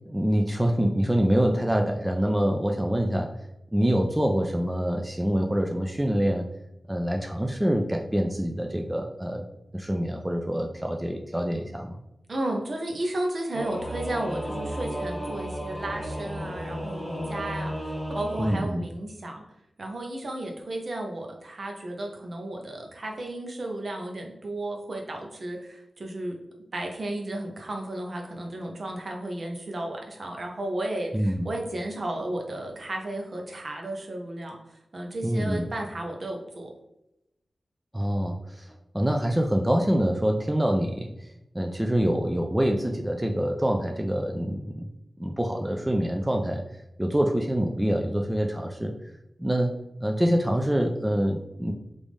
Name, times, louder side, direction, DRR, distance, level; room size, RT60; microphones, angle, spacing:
voice 1, 0.1-3.3 3.7-6.5 6.9-9.4 9.7-12.0 18.4-18.9 31.1-31.4 35.2-35.7 37.9-41.3 41.5-44.9 45.2-46.6 47.0-48.9 49.4-49.7 50.0-51.7, equal, 15° right, 3 dB, 0.4 m, -25 dB
voice 2, 12.3-19.4 19.8-26.3 26.7-34.6 34.9-36.7, right 1 dB, 55° right, 1 dB, 0.8 m, -33 dB
Singing / Musical instrument, 13.5-18.6, equal, 15° left, 1.2 m, -33 dB
3.3 x 2.6 x 3.5 m, 0.87 s
cardioid pair, 55°, 0 cm